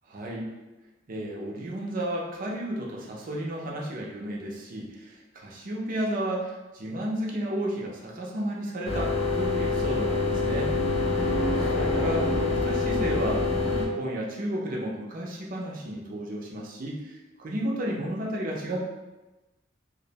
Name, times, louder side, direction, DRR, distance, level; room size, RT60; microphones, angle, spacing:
voice 1, 0.1-0.5 1.1-10.8 11.7-18.8, right 1 dB, 45° right, -2 dB, 0.5 m, -33 dB
sound 1, 8.9-13.9, left 3 dB, 75° left, 0.5 m, -26 dB
2.5 x 2.0 x 2.7 m, 1.1 s
head